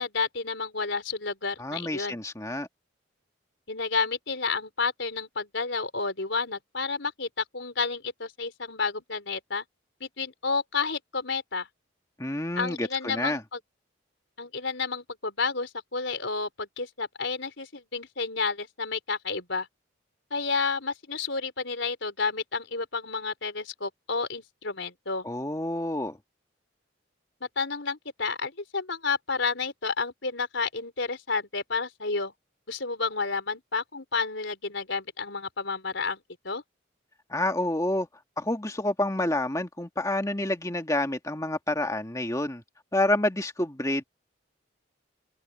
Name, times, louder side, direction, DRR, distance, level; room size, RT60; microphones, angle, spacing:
voice 1, 0.0-2.2 3.7-9.6 10.0-11.7 12.6-13.6 14.4-19.7 20.3-25.3 27.4-32.3 32.7-36.6, left 4 dB, 70° left, 4.0 m, -31 dB
voice 2, 1.6-2.7 12.2-13.4 25.2-26.2 37.3-38.1 38.4-42.6 42.9-44.0, left 1 dB, 15° left, 1.8 m, -28 dB
head